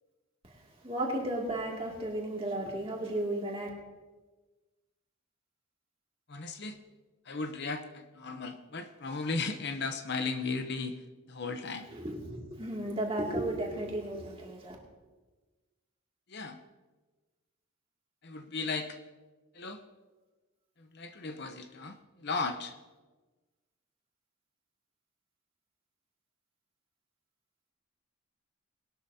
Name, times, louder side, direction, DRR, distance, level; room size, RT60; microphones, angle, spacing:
voice 1, 0.8-3.7 11.9-14.8, right 1 dB, 25° right, -1 dB, 2.3 m, -34 dB
voice 2, 6.3-6.8 7.3-11.0 11.3-11.9 16.3-16.6 18.2-19.0 19.5-19.8 20.9-22.7, left 4 dB, 50° left, 7 dB, 0.7 m, -36 dB
20.5 x 12.0 x 2.8 m, 1.2 s
head